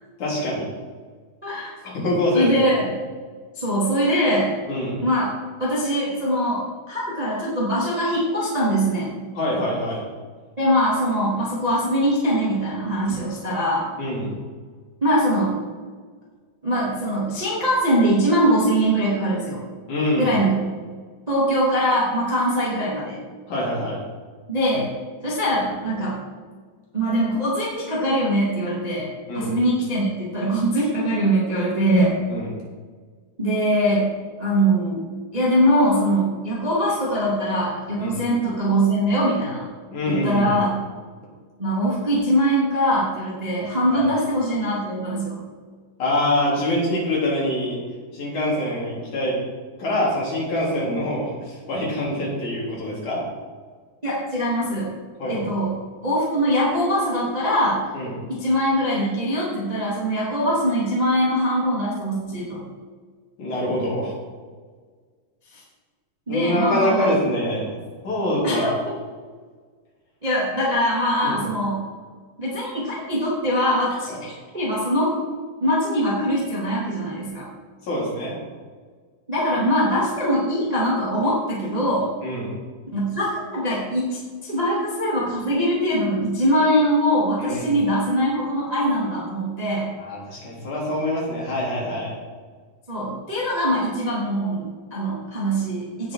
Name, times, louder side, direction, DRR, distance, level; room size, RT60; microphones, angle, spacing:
voice 1, 0.2-0.7 1.8-2.7 4.7-5.0 9.3-10.0 14.0-14.3 19.9-20.4 23.5-24.0 29.3-29.5 32.3-32.5 38.0-38.2 39.9-40.5 43.9-44.1 46.0-47.8 48.1-49.4 49.8-53.2 55.2-55.5 57.9-58.1 63.4-64.1 66.3-67.8 68.0-68.8 71.2-71.4 74.1-74.2 77.8-78.3 82.2-82.5 87.4-87.7 90.0-92.1, left 1 dB, 50° left, -5 dB, 4.8 m, -25 dB
voice 2, 2.3-2.9 3.5-4.5 5.0-5.3 5.6-9.1 10.6-13.9 15.0-15.6 16.6-19.6 20.1-20.7 21.3-23.2 24.5-24.9 25.2-26.2 26.9-29.1 29.3-32.2 33.4-34.1 34.4-35.1 35.3-39.6 40.0-40.7 41.6-45.4 54.0-54.9 55.3-57.8 58.3-62.6 66.3-67.1 68.4-68.7 70.2-71.8 72.4-75.2 75.6-77.5 79.3-82.1 82.9-89.9 92.9-96.1, equal, 10° right, -6 dB, 2.1 m, -22 dB
17.5 x 6.5 x 4.9 m, 1.5 s
omnidirectional pair, 4.7 m